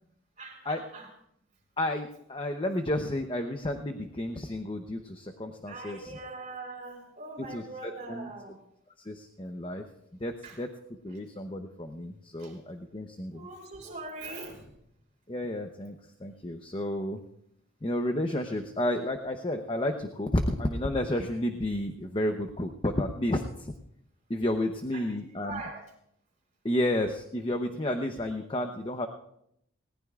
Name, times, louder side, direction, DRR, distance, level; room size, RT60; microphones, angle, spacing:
voice 1, 0.4-1.1 5.7-8.6 10.4-10.6 12.4-12.6 13.3-14.7 24.9-25.8, right 3 dB, 35° right, 0 dB, 4.1 m, -42 dB
voice 2, 1.8-6.1 7.4-8.3 9.0-9.8 10.2-10.7 11.0-13.5 15.3-17.2 17.8-23.7 24.3-25.6 26.6-29.1, left 1 dB, 25° left, 5 dB, 0.8 m, -31 dB
20.0 x 18.5 x 2.5 m, 0.74 s
head